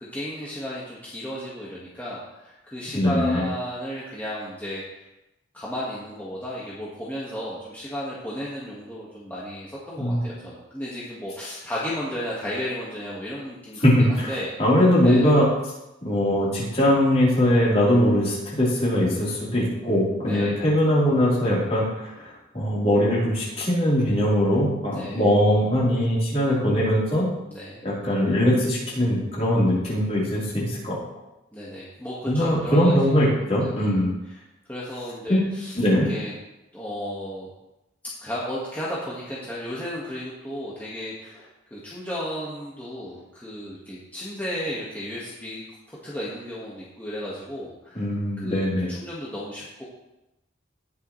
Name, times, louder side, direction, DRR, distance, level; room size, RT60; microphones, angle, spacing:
voice 1, 0.0-5.0 5.5-14.5 15.0-15.4 20.2-20.5 24.9-25.3 27.5-27.8 31.5-33.2 33.5-33.9 34.3-34.4 34.7-35.8 36.1-36.3 36.7-37.5 38.0-45.6 45.9-48.0 48.4-49.8, equal, 10° left, -8 dB, 1.8 m, -34 dB
voice 2, 2.9-3.4 10.0-10.2 13.8-14.3 14.6-15.5 16.0-27.3 27.8-31.0 32.3-34.1 35.3-35.4 35.7-36.1 48.0-48.9, equal, 35° left, -7 dB, 4.1 m, -21 dB
19.0 x 6.9 x 3.3 m, 0.94 s
head